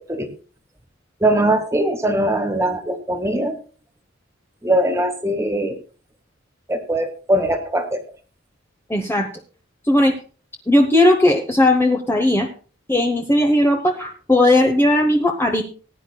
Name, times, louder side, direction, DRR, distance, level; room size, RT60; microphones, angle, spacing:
voice 1, 1.2-3.6 4.6-5.8 6.7-8.0, right 1 dB, 15° right, 6 dB, 1.7 m, -21 dB
voice 2, 8.9-9.3 9.9-10.2 10.7-12.5 12.9-15.6, left 1 dB, 10° left, 3 dB, 0.9 m, -17 dB
19.5 x 9.9 x 2.3 m, 0.38 s
head